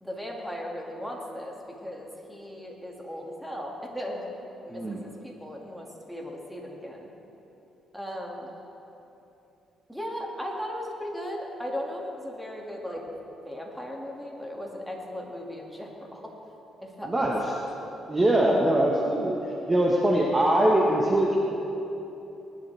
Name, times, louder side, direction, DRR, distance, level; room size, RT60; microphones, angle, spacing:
voice 1, 0.0-1.6 1.8-4.2 4.7-7.1 7.9-8.5 9.9-13.0 13.4-16.3 16.8-17.5, equal, ahead, -1 dB, 2.1 m, -37 dB
voice 2, 17.1-17.4 18.1-19.4 19.7-21.4, right 1 dB, 20° right, -2 dB, 1.3 m, -22 dB
20.0 x 10.5 x 3.4 m, 3.0 s
cardioid pair, 90°, 0 cm